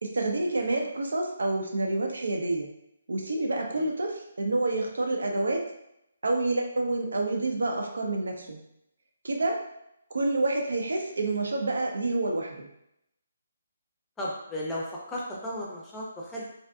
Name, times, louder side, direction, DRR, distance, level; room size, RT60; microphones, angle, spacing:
voice 1, 0.0-2.7 3.1-5.7 6.2-8.6 9.2-9.6 10.1-12.7, right 2 dB, 85° right, 2 dB, 0.5 m, -28 dB
voice 2, 14.2-16.5, left 1 dB, 10° left, -5 dB, 0.5 m, -35 dB
2.6 x 2.4 x 2.3 m, 0.79 s
hypercardioid pair, 165°, 0 cm